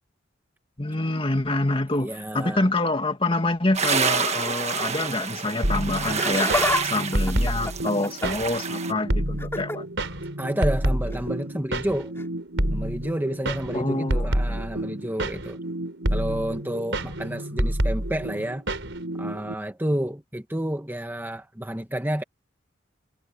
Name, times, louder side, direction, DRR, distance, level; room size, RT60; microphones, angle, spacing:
voice 1, 0.8-6.5 6.8-9.9 13.7-14.6, left 2 dB, 30° left, 2.2 m, -26 dB
voice 2, 1.9-2.7 7.2-7.5 10.4-12.1 12.7-15.6 16.1-18.6 19.2-22.2, right 1 dB, 10° right, 1.3 m, -30 dB
sound 1, 3.7-8.9, right 6 dB, 35° right, 1.5 m, -28 dB
sound 2, 5.6-19.5, right 1 dB, 70° right, 4.6 m, -28 dB
Laughter, 6.0-6.8 7.1-8.5 9.4-9.8 11.1-11.3 12.2-12.3, left 2 dB, 15° left, 4.6 m, -28 dB
head